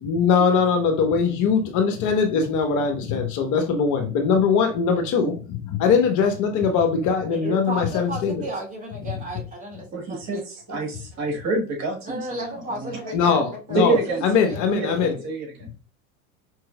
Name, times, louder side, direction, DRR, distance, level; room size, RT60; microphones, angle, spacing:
voice 1, 0.0-8.4 13.1-14.0 14.2-15.2, left 6 dB, 45° left, 0.9 m, -21 dB
voice 2, 7.3-10.5 12.0-13.8 14.1-14.8, right 1 dB, 20° right, 1.9 m, -34 dB
voice 3, 9.9-13.0 13.7-14.3 14.7-15.7, right 2 dB, 40° right, 1.7 m, -27 dB
4.8 x 3.1 x 2.3 m
hypercardioid pair, 90°, 42 cm